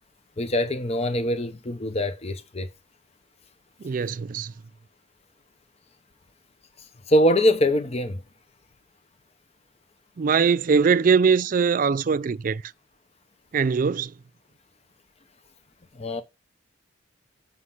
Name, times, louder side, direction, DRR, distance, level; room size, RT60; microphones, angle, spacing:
voice 1, 0.4-2.7 7.1-8.2 16.0-16.2, equal, 35° left, 0.7 m, -23 dB
voice 2, 3.8-4.5 10.2-12.6 13.5-14.1, right 5 dB, 45° right, 0.4 m, -21 dB
8.1 x 5.4 x 5.6 m
head